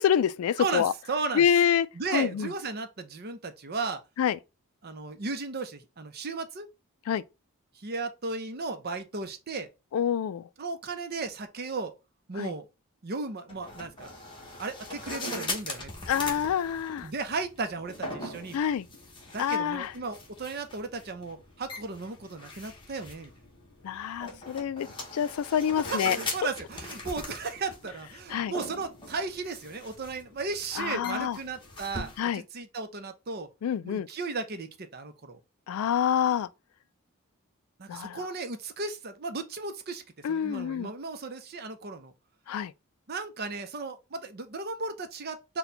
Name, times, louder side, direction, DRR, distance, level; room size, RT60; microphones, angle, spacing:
voice 1, 0.0-0.9 1.3-1.9 2.1-2.5 4.2-4.4 7.1-7.2 9.9-10.5 12.4-12.5 16.1-17.1 18.5-18.9 19.4-19.9 23.8-24.9 25.1-26.2 28.3-28.5 30.8-31.4 32.2-32.4 33.6-34.1 35.7-36.5 37.9-38.2 40.2-40.9 42.5-42.7, left 8 dB, 85° left, 0.3 m, -27 dB
voice 2, 0.6-1.5 2.0-4.0 4.8-6.7 7.8-9.7 10.6-11.9 12.3-12.7 13.0-14.1 14.6-15.9 17.0-18.6 19.3-23.3 25.9-26.0 26.3-33.5 33.8-35.4 37.8-42.1 43.1-45.6, right 3 dB, 45° right, 0.6 m, -35 dB
sound 1, 13.5-32.2, left 2 dB, 25° left, 1.0 m, -41 dB
4.3 x 2.2 x 3.9 m
head